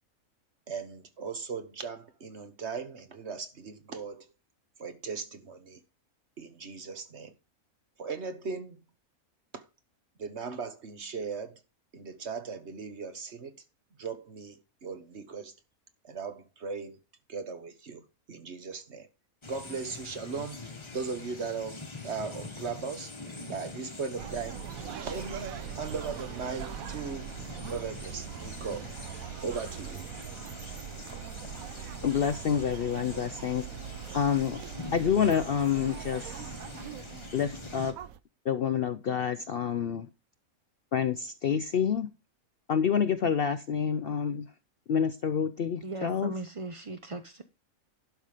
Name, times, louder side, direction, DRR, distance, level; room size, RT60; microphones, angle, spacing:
voice 1, 0.7-4.3 4.8-5.8 6.4-7.3 8.0-8.8 9.5-9.6 10.2-11.6 11.9-13.5 14.0-15.5 16.0-17.0 17.3-19.1 19.5-20.7 20.9-23.1 23.4-24.6 25.0-27.3 27.7-28.9 29.4-30.0, right 5 dB, 50° right, 1.4 m, -38 dB
sound 1, 19.4-37.9, left 3 dB, 20° left, 1.1 m, -44 dB
sound 2, 24.2-38.2, right 10 dB, 75° right, 1.1 m, -41 dB
voice 2, 32.0-33.7 34.1-34.6 34.9-36.5 37.3-37.9 38.5-40.1 40.9-42.1 42.7-44.5 44.9-46.3, left 7 dB, 60° left, 0.6 m, -28 dB
voice 3, 45.8-47.4, right 3 dB, 35° right, 0.5 m, -38 dB
11.5 x 5.6 x 5.0 m
omnidirectional pair, 1.5 m